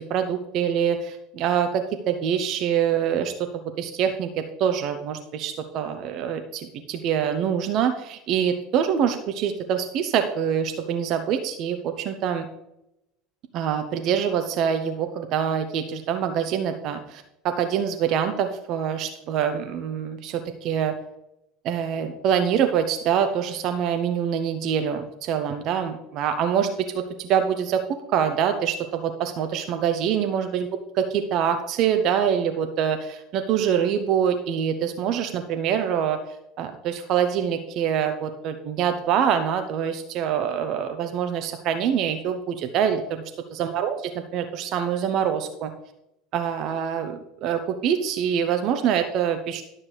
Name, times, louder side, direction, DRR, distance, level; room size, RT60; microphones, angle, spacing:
voice 1, 0.0-12.5 13.5-20.9 21.6-30.7 31.0-36.2 36.6-43.2 43.6-45.7 46.3-49.6, right 8 dB, 50° right, 7 dB, 0.8 m, -25 dB
12.0 x 7.2 x 3.3 m, 0.84 s
figure-of-eight pair, 70°, 0 cm